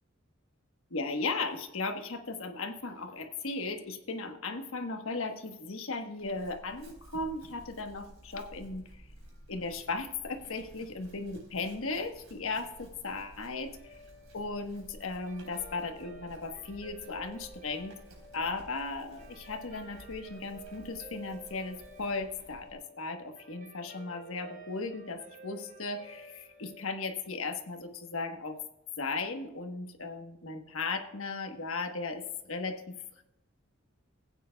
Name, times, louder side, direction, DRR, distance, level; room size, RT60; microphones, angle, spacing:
voice 1, 0.9-8.8 9.5-14.0 14.3-17.9 18.3-28.6 29.0-32.9, left 3 dB, 80° left, 6 dB, 1.2 m, -36 dB
Chewing mastication / Livestock farm animals working animals, 6.2-22.8, right 1 dB, 80° right, 3.7 m, -54 dB
Guitar, 13.7-28.3, right 2 dB, 45° right, 3.7 m, -53 dB
16.0 x 9.2 x 2.3 m, 0.87 s
head